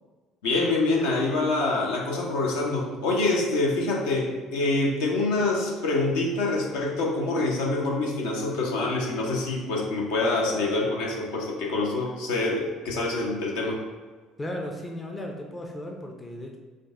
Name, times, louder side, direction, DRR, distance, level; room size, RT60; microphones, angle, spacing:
voice 1, 0.4-13.8, left 2 dB, 65° left, -2 dB, 0.7 m, -26 dB
voice 2, 14.4-16.6, left 1 dB, 20° left, 2 dB, 0.5 m, -35 dB
5.0 x 2.3 x 3.6 m, 1.4 s
figure-of-eight pair, 55°, 0 cm